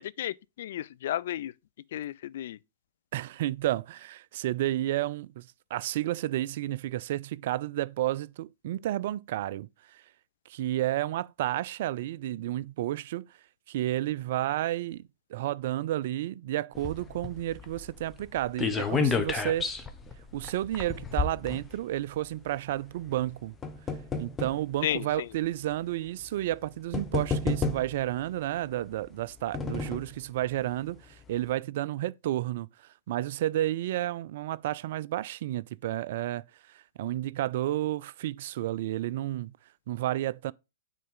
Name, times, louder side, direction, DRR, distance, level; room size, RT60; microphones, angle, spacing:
voice 1, 0.0-1.5 1.9-2.6 24.8-25.3, left 12 dB, 55° left, 0.4 m, -33 dB
voice 2, 3.1-10.0 10.5-13.3 13.7-15.0 15.3-19.7 20.3-23.5 24.2-32.7 33.1-39.5 39.9-40.5, right 14 dB, 50° right, 0.3 m, -31 dB
sound 1, 16.7-22.2 23.1-24.6 25.4-25.5 26.5-26.6 26.9-28.1 29.1-30.2 30.6-30.7 31.0-31.1, left 4 dB, 15° left, 1.0 m, -32 dB
9.2 x 4.0 x 3.8 m
figure-of-eight pair, 110°, 0 cm